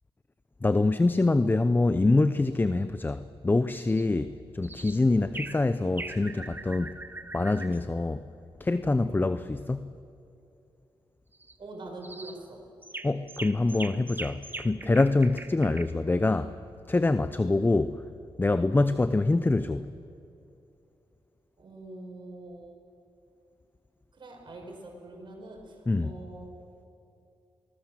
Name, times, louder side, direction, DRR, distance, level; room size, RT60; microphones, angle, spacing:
voice 1, 0.6-6.9 7.3-8.3 8.6-9.9 13.0-16.5 16.9-18.0 18.4-19.9 25.9-26.1, left 2 dB, 20° left, 0.7 m, -25 dB
sound 1, 3.9-4.1 4.6-5.0 5.3-5.6 6.0-7.8 11.3-11.5 12.0-12.4 12.8-15.8, right 2 dB, 20° right, 1.4 m, -41 dB
voice 2, 11.6-12.6 21.6-22.8 24.1-26.7, right 2 dB, 60° right, 5.9 m, -44 dB
27.0 x 19.5 x 7.5 m
cardioid pair, 75°, 10 cm